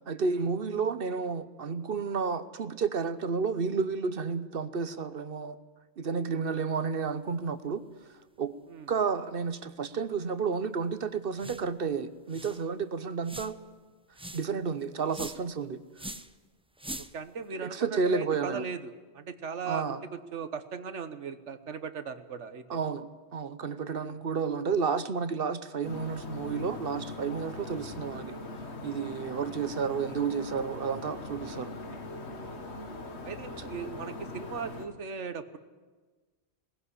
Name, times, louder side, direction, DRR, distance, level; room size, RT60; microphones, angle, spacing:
voice 1, 0.0-5.6 6.0-7.8 8.4-8.5 8.9-13.6 14.3-15.8 17.6-18.7 19.7-20.0 22.7-28.4 28.8-31.7 33.6-33.7, right 5 dB, 55° right, 13 dB, 1.0 m, -31 dB
sound 1, 11.4-11.7 12.0-12.1 12.3-12.6 13.2-13.7 14.1-14.5 15.1-15.5 15.9-16.3 16.8-17.3, right 1 dB, 10° right, 0.4 m, -42 dB
voice 2, 17.0-22.8 24.0-24.1 32.1-32.4 33.2-35.6, right 6 dB, 85° right, 10 dB, 1.4 m, -38 dB
sound 2, 25.8-34.9, left 2 dB, 70° left, 1.9 m, -41 dB
19.0 x 16.0 x 9.9 m, 1.3 s
omnidirectional pair, 1.2 m